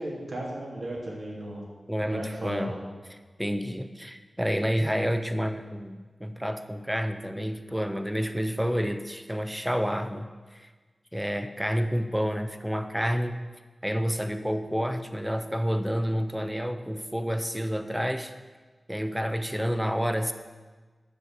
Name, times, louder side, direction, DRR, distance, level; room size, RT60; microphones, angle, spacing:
voice 1, 0.0-1.6 2.0-2.8, right 1 dB, 70° right, -3 dB, 2.9 m, -35 dB
voice 2, 1.9-2.8 3.1-10.7 11.1-13.4 13.8-18.3 18.9-20.3, equal, 5° right, 8 dB, 0.9 m, -29 dB
10.0 x 6.7 x 8.1 m, 1.4 s
cardioid pair, 50°, 0 cm